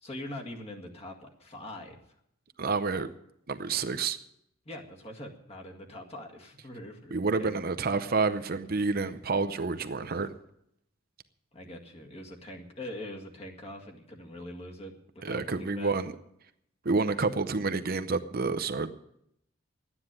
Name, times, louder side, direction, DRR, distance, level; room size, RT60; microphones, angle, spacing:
voice 1, 0.0-2.0 4.7-7.5 11.5-16.0, left 1 dB, 30° left, 1 dB, 1.9 m, -43 dB
voice 2, 2.6-3.1 3.5-4.2 7.1-10.3 15.2-16.1 16.8-18.9, right 4 dB, 45° right, 11 dB, 0.7 m, -29 dB
12.0 x 9.8 x 8.9 m, 0.75 s
head